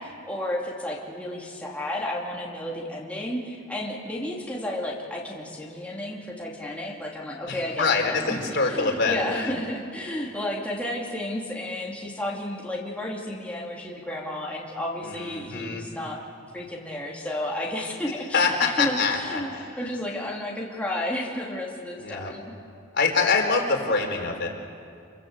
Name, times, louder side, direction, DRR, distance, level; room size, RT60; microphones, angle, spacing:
voice 1, 0.0-16.2 16.5-22.5, left 1 dB, 5° left, -3 dB, 2.5 m, -32 dB
voice 2, 7.5-9.6 15.0-15.8 18.3-19.7 22.0-22.3 22.9-24.5, left 4 dB, 60° left, 1 dB, 4.1 m, -25 dB
28.5 x 21.0 x 8.0 m, 2.5 s
head